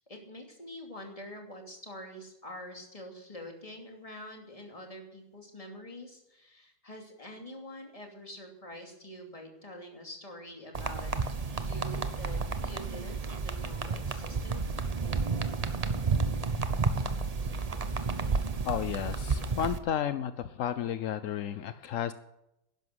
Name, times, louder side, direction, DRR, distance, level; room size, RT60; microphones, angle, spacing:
voice 1, 0.1-11.1 11.5-14.7, left 1 dB, 15° left, 2 dB, 2.7 m, -46 dB
sound 1, 10.7-19.8, right 4 dB, 55° right, 0.4 m, -31 dB
voice 2, 18.6-20.3 20.6-22.1, left 9 dB, 70° left, 12 dB, 0.7 m, -32 dB
12.0 x 11.0 x 8.0 m, 0.86 s
omnidirectional pair, 2.1 m